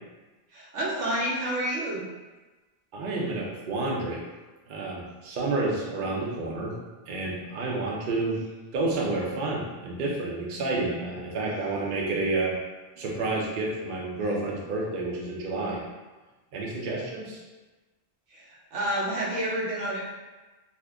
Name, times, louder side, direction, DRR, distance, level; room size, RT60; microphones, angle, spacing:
voice 1, 0.5-2.1 18.3-20.1, right 1 dB, 85° right, -5 dB, 1.1 m, -29 dB
voice 2, 2.9-4.2 4.7-6.8 7.1-8.4 8.7-12.6 13.0-15.8 16.5-17.4, right 2 dB, 50° right, -3 dB, 0.7 m, -29 dB
2.7 x 2.4 x 3.4 m, 1.2 s
omnidirectional pair, 1.2 m